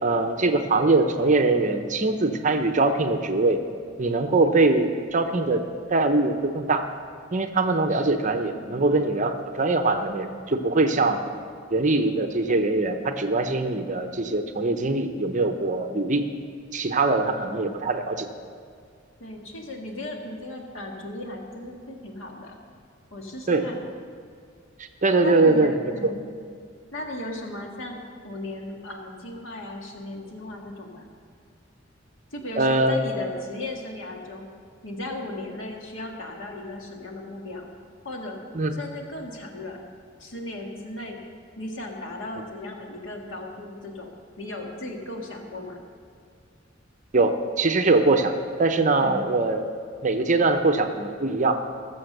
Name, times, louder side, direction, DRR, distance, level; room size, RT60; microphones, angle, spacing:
voice 1, 0.0-3.6 4.0-5.6 5.9-6.8 7.3-11.2 11.7-16.2 16.7-18.3 23.5-23.6 24.8-25.7 32.6-33.0 38.5-38.7 47.1-49.7 50.0-51.6, right 2 dB, 40° right, 6 dB, 0.8 m, -22 dB
voice 2, 8.6-8.9 17.2-17.8 19.2-22.5 23.1-23.9 25.2-26.3 26.9-28.0 28.2-31.1 32.3-34.5 34.8-37.6 38.0-38.4 38.7-39.8 40.2-41.2 41.6-44.1 44.4-45.8 49.0-49.3, left 1 dB, 90° left, 1 dB, 1.9 m, -36 dB
20.5 x 7.0 x 6.6 m, 2.2 s
head